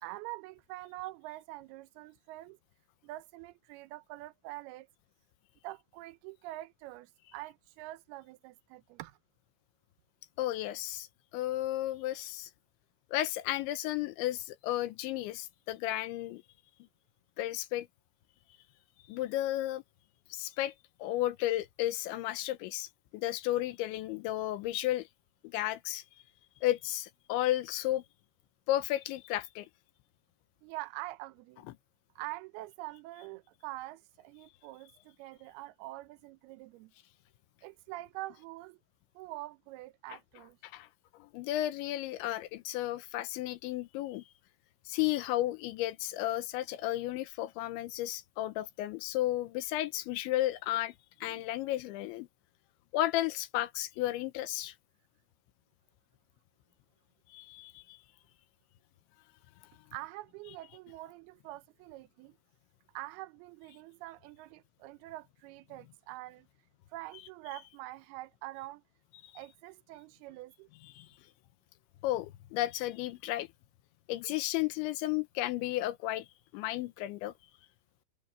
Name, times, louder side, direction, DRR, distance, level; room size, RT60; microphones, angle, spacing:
voice 1, 0.0-2.6 3.0-4.9 5.6-9.2 30.6-31.7 32.2-36.9 37.6-38.8 39.2-40.6 51.3-51.5 59.9-62.4 62.9-66.5 66.9-68.8 69.3-70.7, right 18 dB, 90° right, 2.2 m, -45 dB
voice 2, 10.4-11.1 11.3-12.5 13.1-16.4 17.4-17.9 19.1-19.8 20.3-20.7 21.0-25.1 25.4-26.0 26.6-28.0 28.7-29.7 40.1-40.2 40.6-40.9 41.1-44.2 44.9-50.9 51.2-52.3 52.9-54.7 57.3-58.0 69.2-69.3 70.8-71.2 72.0-73.5 74.1-76.3 76.5-77.3, left 15 dB, 80° left, 3.1 m, -33 dB
omnidirectional pair, 5.4 m